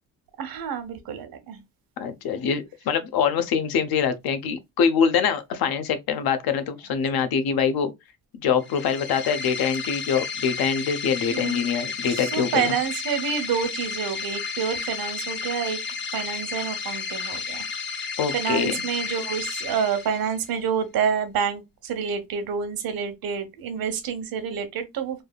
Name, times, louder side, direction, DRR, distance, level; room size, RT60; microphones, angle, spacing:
voice 1, 0.4-1.6 7.3-7.4 9.4-9.5 11.3-11.6 12.1-15.8 16.1-17.6 18.3-25.2, right 7 dB, 75° right, 0.8 m, -28 dB
voice 2, 2.0-7.9 8.3-12.7 18.2-18.7, left 7 dB, 80° left, 0.6 m, -24 dB
sound 1, 8.6-20.5, left 5 dB, 35° left, 0.4 m, -32 dB
3.3 x 2.3 x 2.2 m
wide cardioid pair, 175°, 36 cm